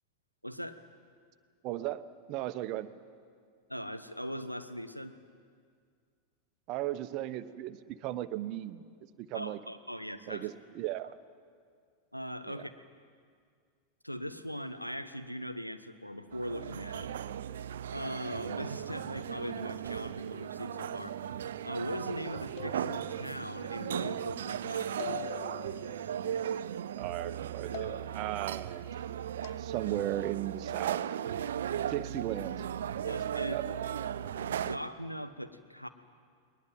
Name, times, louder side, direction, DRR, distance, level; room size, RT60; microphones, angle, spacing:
voice 1, 0.4-0.8 3.7-5.1 9.3-10.5 12.1-12.7 14.0-17.1 17.9-21.2 21.6-25.3 33.0-33.8 34.3-35.9, equal, 90° left, 10 dB, 1.2 m, -40 dB
voice 2, 1.6-2.0 2.3-2.9 6.7-8.8 9.2-9.6 10.3-11.1 12.5-12.6 26.9-28.8 29.6-31.0 31.8-32.6 32.9-33.6, right 14 dB, 40° right, 11 dB, 1.0 m, -36 dB
sound 1, 16.3-34.8, right 9 dB, 60° right, 0.6 m, -37 dB
sound 2, 22.6-23.4 25.0-25.9 27.7-28.4 29.4-29.7, left 14 dB, 50° left, 0.6 m, -43 dB
21.0 x 20.0 x 9.4 m, 2.1 s
figure-of-eight pair, 90°, 0 cm